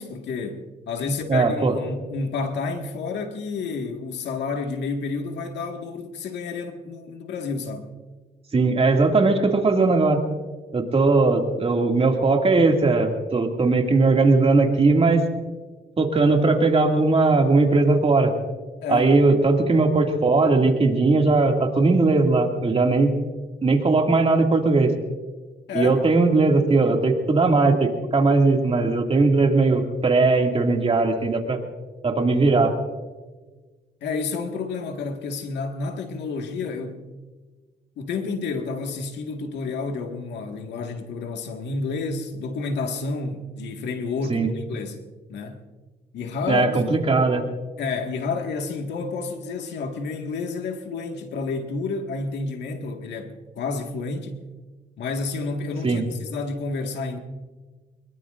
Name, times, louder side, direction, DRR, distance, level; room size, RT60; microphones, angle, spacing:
voice 1, 0.0-7.9 18.8-19.1 25.7-26.0 34.0-37.0 38.0-45.6 46.1-46.8 47.8-54.4 55.0-57.2, left 4 dB, 85° left, 1.8 m, -30 dB
voice 2, 1.0-1.7 8.5-10.2 10.7-15.2 16.0-18.3 18.9-23.1 23.6-24.9 25.7-31.6 32.0-32.7 44.3-44.5 46.5-47.5 55.8-56.0, right 3 dB, 35° right, 2.3 m, -19 dB
24.0 x 21.5 x 2.5 m
cardioid pair, 100°, 18 cm